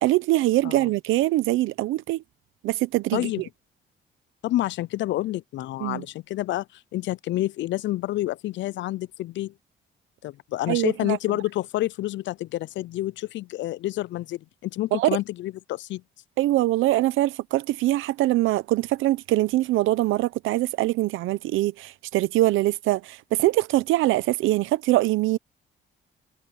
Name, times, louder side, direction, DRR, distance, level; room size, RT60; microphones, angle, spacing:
voice 1, 0.0-2.2 2.6-3.3 5.8-6.0 10.7-11.2 14.9-15.1 16.4-25.4, right 16 dB, 90° right, 0.7 m, -23 dB
voice 2, 3.1-3.4 4.4-9.5 10.2-16.0, left 15 dB, 70° left, 0.4 m, -29 dB
cardioid pair, 90°, 20 cm